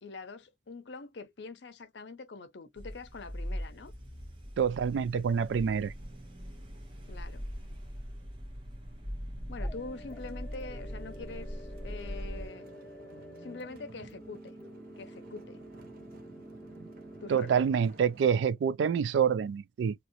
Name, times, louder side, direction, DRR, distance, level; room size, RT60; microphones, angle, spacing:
voice 1, 0.0-3.9 7.1-7.5 9.5-12.7 13.4-14.5 15.0-15.6 17.2-17.8, left 3 dB, 75° left, 0.6 m, -44 dB
sound 1, 2.8-12.5, equal, 30° right, 0.9 m, -41 dB
voice 2, 4.6-5.9 17.3-19.9, right 7 dB, 80° right, 0.3 m, -27 dB
sound 2, 9.6-17.6, right 1 dB, 10° left, 0.7 m, -49 dB
sound 3, 9.9-18.3, right 2 dB, 50° right, 0.7 m, -54 dB
2.9 x 2.6 x 2.9 m
head